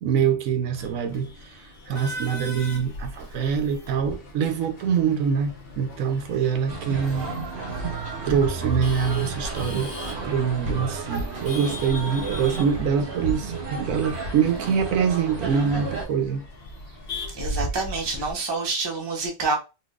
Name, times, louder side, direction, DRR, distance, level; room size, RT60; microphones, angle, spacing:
voice 1, 0.0-7.3 8.2-9.9 10.2-16.4, right 7 dB, 80° right, 1.0 m, -24 dB
Male speech man speaking / Laughter / Chatter, 0.8-18.3, left 1 dB, 50° left, 1.1 m, -39 dB
sound 1, 6.7-16.1, right 3 dB, 45° right, 1.0 m, -32 dB
voice 2, 17.3-19.5, right 3 dB, 25° right, 0.7 m, -27 dB
4.0 x 2.6 x 2.4 m
omnidirectional pair, 1.4 m